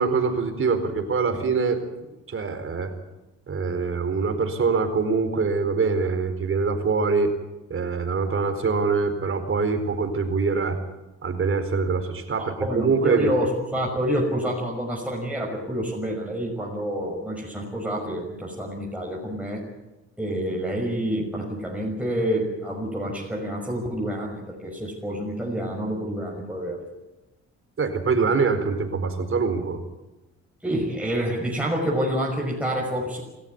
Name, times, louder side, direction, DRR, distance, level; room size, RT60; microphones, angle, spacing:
voice 1, 0.0-1.8 2.3-2.9 3.5-7.3 7.7-10.8 11.2-13.3 27.8-29.8, right 4 dB, 45° right, 7 dB, 4.5 m, -24 dB
voice 2, 12.4-19.6 20.2-26.8 30.6-33.2, equal, 5° right, -3 dB, 5.9 m, -28 dB
28.0 x 14.0 x 9.6 m, 1.0 s
cardioid pair, 90°, 30 cm